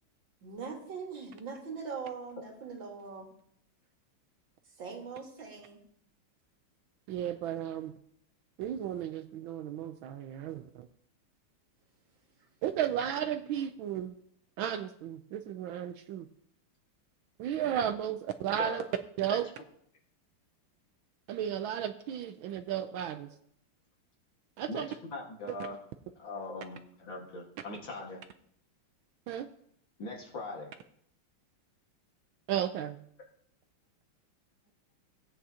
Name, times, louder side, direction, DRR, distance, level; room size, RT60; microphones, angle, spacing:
voice 1, 0.4-3.3 4.7-5.8 10.3-10.4 12.4-12.5, right 5 dB, 60° right, 1 dB, 2.3 m, -41 dB
voice 2, 7.1-7.9 8.6-10.9 12.6-14.1 14.6-16.3 17.4-18.8 19.2-19.5 21.3-23.3 24.6-24.9 29.3-29.5 32.5-33.0, right 10 dB, 75° right, 9 dB, 1.3 m, -34 dB
voice 3, 24.7-25.8 26.2-28.2 30.0-30.7, left 2 dB, 60° left, -1 dB, 2.5 m, -40 dB
17.0 x 8.8 x 2.8 m, 0.67 s
omnidirectional pair, 2.4 m